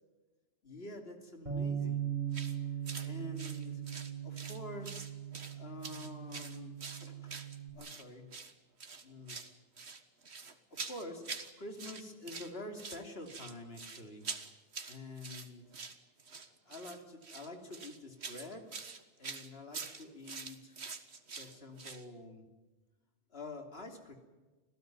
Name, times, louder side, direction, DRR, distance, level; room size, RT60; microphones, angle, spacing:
voice 1, 0.6-2.1 2.4-3.8 4.2-5.1 5.5-7.4 7.7-8.3 9.0-9.4 10.7-11.3 11.6-14.2 14.9-15.6 16.4-18.6 19.2-20.8 21.3-22.5 23.3-24.1, left 2 dB, 70° left, 4 dB, 3.3 m, -47 dB
Bass guitar, 1.5-7.7, right 9 dB, 45° right, 5.1 m, -39 dB
sound 1, 2.3-2.6 2.9-3.1 3.4-4.6 4.8-5.6 5.8-8.0 8.3-8.5 8.8-9.5 9.8-11.5 11.8-12.5 12.8-22.0, right 4 dB, 85° right, 1.9 m, -45 dB
26.0 x 16.5 x 9.4 m, 1.2 s
omnidirectional pair, 1.1 m